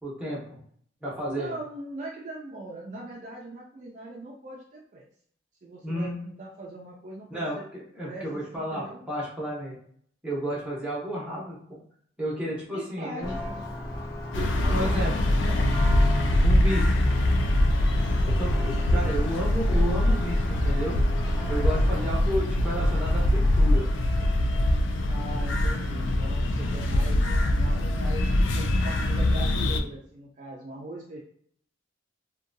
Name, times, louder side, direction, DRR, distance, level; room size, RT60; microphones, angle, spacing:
voice 1, 0.0-0.6 1.0-1.5 5.8-6.2 7.3-9.7 10.2-11.8 12.2-13.3 14.4-15.1 16.4-17.0 18.2-21.0 21.5-23.9, equal, 5° right, -6 dB, 0.8 m, -32 dB
voice 2, 1.3-5.1 5.6-7.7 8.0-9.0 12.7-13.6 14.6-16.0 19.0-19.2 21.8-22.2 25.1-31.2, right 1 dB, 40° right, -2 dB, 0.4 m, -41 dB
Church bell, 13.2-23.8, left 1 dB, 50° left, 0.7 m, -36 dB
sound 1, 14.3-29.8, left 1 dB, 75° left, 0.3 m, -23 dB
2.6 x 2.2 x 2.6 m, 0.63 s
head